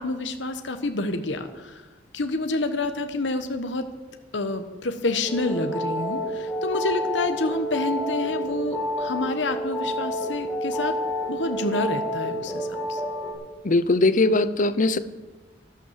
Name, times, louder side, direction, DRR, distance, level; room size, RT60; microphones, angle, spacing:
voice 1, 0.0-1.8 2.1-3.9 4.3-11.0 11.3-13.0, left 2 dB, 80° left, 7 dB, 1.1 m, -28 dB
sound 1, 5.3-13.3, equal, 5° left, 4.1 m, -29 dB
voice 2, 13.6-15.0, left 2 dB, 45° left, 14 dB, 0.8 m, -20 dB
12.0 x 12.0 x 7.4 m, 1.2 s
head